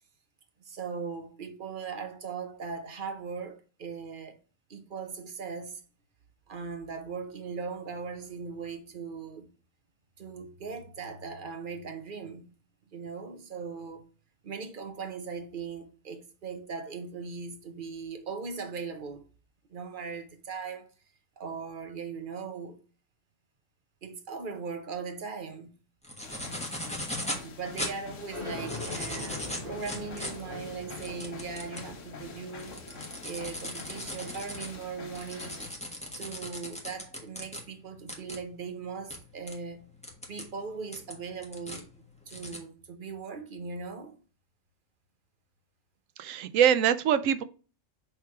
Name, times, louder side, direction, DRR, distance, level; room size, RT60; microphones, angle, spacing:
voice 1, 0.6-4.4 4.7-5.8 6.5-9.5 10.2-12.5 12.9-14.0 14.4-19.3 19.7-20.9 21.4-22.8 24.0-25.7 27.4-32.8 33.2-35.6 36.2-39.9 40.3-41.9 42.3-44.2, right 5 dB, 45° right, 1.0 m, -39 dB
sound 1, 26.0-27.5 27.8-27.9 28.5-31.9 32.4-37.6 38.1-38.4 39.1-39.2 39.5-39.6 40.0-40.5 40.9-41.8 42.3-42.6, left 1 dB, 5° left, 1.2 m, -38 dB
sound 2, 26.2-35.7, left 4 dB, 75° left, 1.4 m, -46 dB
sound 3, 28.3-35.6, left 2 dB, 25° left, 1.7 m, -44 dB
voice 2, 46.2-47.4, right 9 dB, 90° right, 1.0 m, -23 dB
6.3 x 3.4 x 4.6 m
omnidirectional pair, 1.3 m